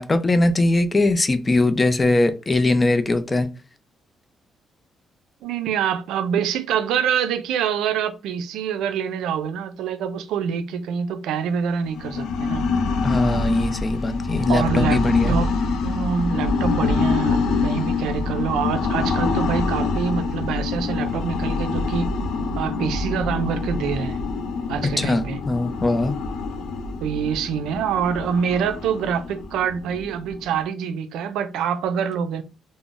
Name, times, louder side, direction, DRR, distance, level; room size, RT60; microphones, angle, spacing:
voice 1, 0.0-3.5 13.0-15.4 24.8-26.1, left 2 dB, 25° left, 0.4 m, -21 dB
voice 2, 5.4-12.6 14.5-15.0 15.3-15.5 15.8-22.1 22.6-24.2 24.7-25.4 27.0-32.4, right 7 dB, 90° right, 0.4 m, -25 dB
sound 1, 11.9-30.6, left 4 dB, 85° left, 0.4 m, -25 dB
2.4 x 2.0 x 3.7 m
cardioid pair, 90°, 0 cm